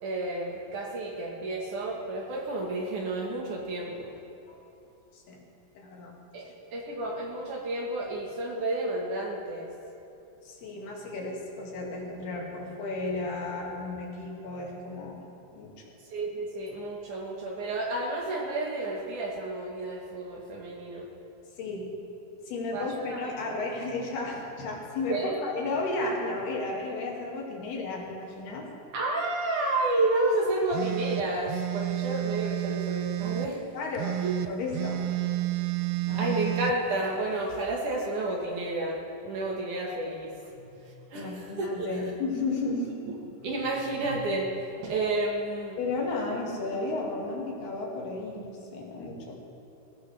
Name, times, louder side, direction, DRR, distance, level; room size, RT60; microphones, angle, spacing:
voice 1, 0.0-4.1 6.3-6.4 6.7-9.7 16.1-21.1 22.7-23.2 25.1-25.4 28.9-33.6 34.2-34.3 36.2-40.3 41.1-42.0 42.8-42.9 43.4-44.5 44.8-45.8, right 2 dB, 60° right, -1 dB, 2.6 m, -31 dB
voice 2, 5.8-6.1 6.4-6.5 10.4-15.2 15.5-15.7 21.6-21.9 22.5-28.7 33.7-35.3 36.1-36.4 40.6-40.8 41.1-42.8 43.4-43.5 45.8-49.4, left 3 dB, 75° left, -2 dB, 4.2 m, -33 dB
sound 1, 30.7-33.5 33.9-36.8, right 18 dB, 80° right, 2.5 m, -30 dB
22.0 x 17.0 x 3.4 m, 3.0 s
omnidirectional pair, 4.6 m